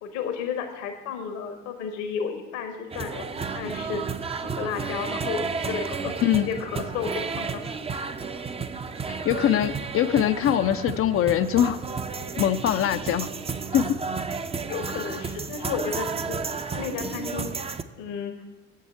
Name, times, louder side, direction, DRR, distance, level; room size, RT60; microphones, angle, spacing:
voice 1, 0.0-4.0 4.4-7.6 14.6-16.4 16.7-17.5 18.0-18.4, left 6 dB, 65° left, 6 dB, 1.2 m, -32 dB
sound 1, 2.9-17.8, right 5 dB, 15° right, 0.5 m, -32 dB
voice 2, 9.2-11.8 12.4-13.3 13.7-14.0, left 11 dB, 35° left, 11 dB, 0.5 m, -22 dB
7.8 x 7.5 x 8.4 m, 1.2 s
figure-of-eight pair, 50°, 38 cm